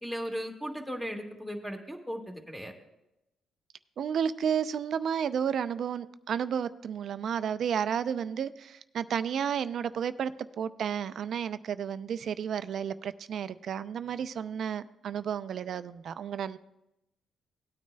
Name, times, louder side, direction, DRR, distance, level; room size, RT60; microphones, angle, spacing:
voice 1, 0.0-2.7, equal, ahead, 1.7 m, -37 dB
voice 2, 4.0-10.3 10.6-16.6, right 8 dB, 60° right, 0.4 m, -32 dB
18.0 x 9.2 x 2.2 m
cardioid pair, 90°, 0 cm